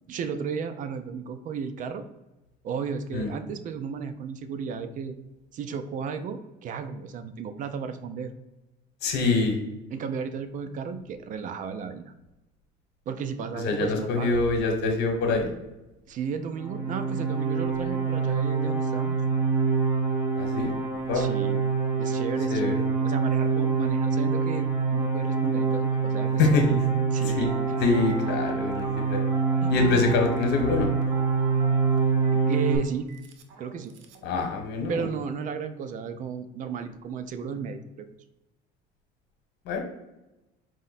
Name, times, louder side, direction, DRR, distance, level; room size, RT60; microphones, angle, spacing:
voice 1, 0.1-2.0 2.6-5.2 5.5-8.3 9.9-12.1 13.1-14.4 16.1-19.2 21.1-21.6 22.0-26.4 27.1-28.0 29.6-30.2 32.3-33.1 33.6-33.9 34.9-38.1, right 6 dB, 45° right, 9 dB, 0.4 m, -34 dB
voice 2, 9.0-9.6 13.5-15.5 20.4-20.7 21.1-21.3 22.5-22.8 26.4-26.8 27.4-27.5 27.8-29.2 29.7-30.9 34.2-35.1 39.6-39.8, left 4 dB, 65° left, 3 dB, 1.0 m, -25 dB
sound 1, 16.5-32.8, right 5 dB, 15° right, 1.1 m, -26 dB
Telephone, 27.5-34.3, right 7 dB, 85° right, 0.7 m, -43 dB
4.7 x 2.1 x 4.0 m, 1.0 s
cardioid pair, 130°, 19 cm